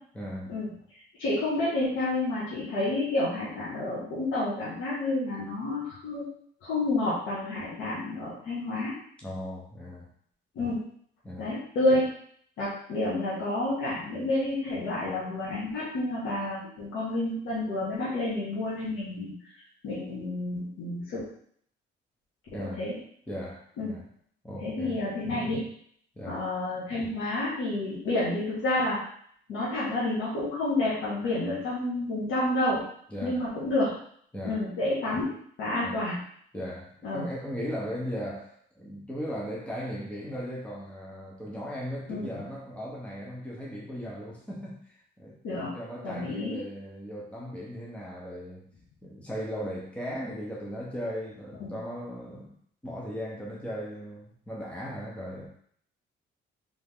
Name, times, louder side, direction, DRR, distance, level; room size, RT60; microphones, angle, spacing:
voice 1, 0.1-0.6 9.2-10.1 11.2-11.5 22.5-22.9 23.3-24.1 24.4-25.5 26.2-26.4 33.1-33.4 34.3-34.6 35.8-36.0 36.5-48.7 49.0-52.6 52.8-55.5, equal, 5° left, -4 dB, 1.1 m, -37 dB
voice 2, 1.2-6.2 6.6-8.9 10.5-10.8 11.4-12.1 12.6-19.3 19.8-21.2 22.6-23.0 23.8-23.9 24.6-25.6 26.3-29.0 29.5-32.8 33.2-33.9 34.4-35.3 35.6-36.2 37.0-37.3 42.1-42.3 45.4-45.7 46.0-46.6 51.6-51.7, left 2 dB, 85° left, -9 dB, 1.6 m, -29 dB
3.8 x 3.6 x 3.7 m, 0.62 s
cardioid pair, 90°, 20 cm